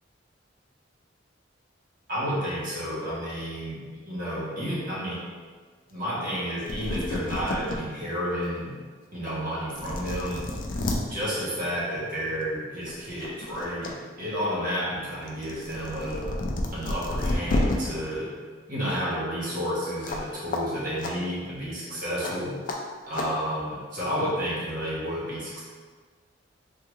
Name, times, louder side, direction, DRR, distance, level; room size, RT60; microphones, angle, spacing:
voice 1, 2.1-5.2 5.9-8.7 9.1-10.5 11.1-16.3 16.7-18.3 18.7-22.6 23.1-25.6, equal, 50° right, -8 dB, 1.0 m, -31 dB
sound 1, 6.4-6.5 6.7-7.8 8.3-8.4 9.3-9.4 9.7-11.0 12.3-12.5 12.9-13.9 14.3-17.8 20.0-20.2 20.5-20.6 21.0-21.1 22.2-22.3 22.7-22.8 23.1-23.3, left 2 dB, 45° left, 0.4 m, -30 dB
3.5 x 2.4 x 3.0 m, 1.5 s
head